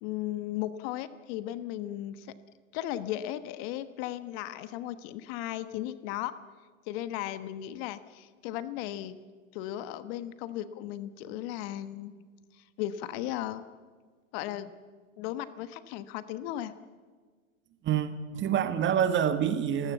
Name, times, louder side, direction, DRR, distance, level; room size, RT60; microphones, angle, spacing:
voice 1, 0.0-2.3 2.7-6.3 6.9-9.2 9.5-12.2 12.6-13.7 14.3-14.7 15.2-16.7, left 13 dB, 50° left, 13 dB, 1.3 m, -36 dB
voice 2, 17.8-19.9, right 9 dB, 30° right, 11 dB, 1.6 m, -27 dB
30.0 x 16.0 x 7.2 m, 1.5 s
hypercardioid pair, 105°, 39 cm